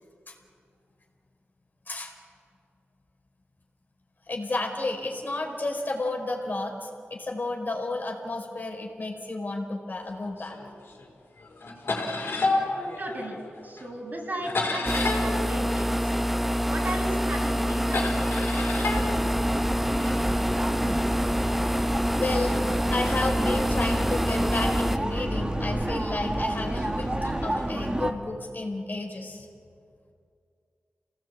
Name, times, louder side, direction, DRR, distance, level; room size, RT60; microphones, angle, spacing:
voice 1, 4.3-10.6 22.2-22.5 22.9-27.1 27.4-29.5, left 2 dB, 50° left, 1 dB, 4.6 m, -32 dB
sound 1, 10.4-11.1 11.4-16.7 17.0-20.2 20.9-24.5 25.2-25.3 26.3-27.7, left 3 dB, 70° left, 4.5 m, -33 dB
voice 2, 13.0-16.1 16.7-18.7, right 1 dB, 45° right, 0 dB, 6.0 m, -36 dB
sound 2, 14.9-25.0, equal, 5° right, 0.8 m, -26 dB
sound 3, 18.9-28.1, right 1 dB, 20° right, 2.0 m, -30 dB
28.0 x 18.5 x 8.7 m, 2.4 s
cardioid pair, 55°, 4 cm